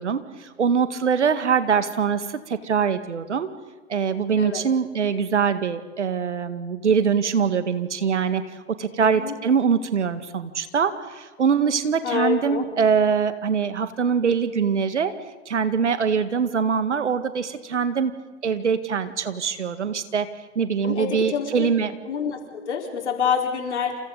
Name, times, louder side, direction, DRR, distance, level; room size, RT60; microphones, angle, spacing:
voice 1, 0.0-3.5 3.9-8.4 8.7-15.1 15.5-18.1 18.4-20.3 20.6-21.9, right 6 dB, 75° right, 11 dB, 1.9 m, -23 dB
voice 2, 9.0-9.3 12.0-12.6 20.8-21.7 22.1-24.0, left 7 dB, 70° left, 2 dB, 4.5 m, -27 dB
29.0 x 28.5 x 4.1 m, 1.4 s
figure-of-eight pair, 105°, 35 cm